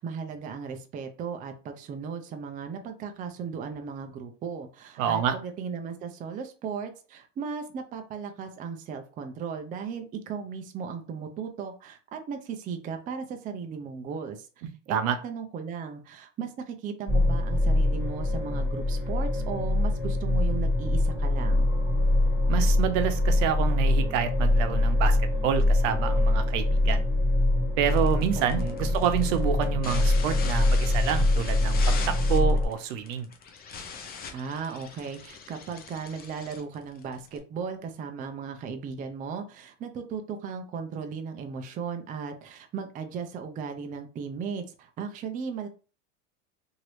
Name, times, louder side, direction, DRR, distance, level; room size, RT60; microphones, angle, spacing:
voice 1, 0.0-14.5 14.9-21.7 28.4-29.0 34.3-45.7, right 6 dB, 20° right, 6 dB, 0.4 m, -36 dB
voice 2, 5.0-5.4 14.9-15.2 22.5-25.2 25.4-27.0 27.8-33.3, right 8 dB, 70° right, 9 dB, 0.7 m, -28 dB
sound 1, 17.1-32.7, left 1 dB, 5° right, 1.7 m, -24 dB
sound 2, 27.8-37.4, left 5 dB, 25° left, 0.6 m, -41 dB
3.0 x 2.7 x 3.0 m, 0.36 s
supercardioid pair, 125°, 39 cm